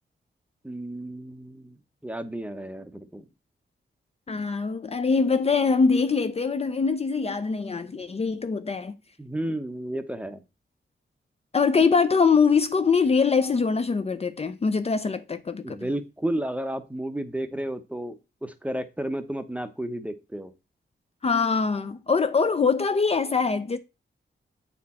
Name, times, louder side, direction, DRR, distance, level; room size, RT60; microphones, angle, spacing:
voice 1, 0.6-1.8 2.0-3.3 9.2-10.4 15.6-20.5, right 1 dB, 5° right, 0.7 m, -32 dB
voice 2, 4.3-8.9 11.5-15.8 21.2-23.8, left 5 dB, 30° left, 0.5 m, -23 dB
8.6 x 4.4 x 4.2 m
wide cardioid pair, 155°, 20 cm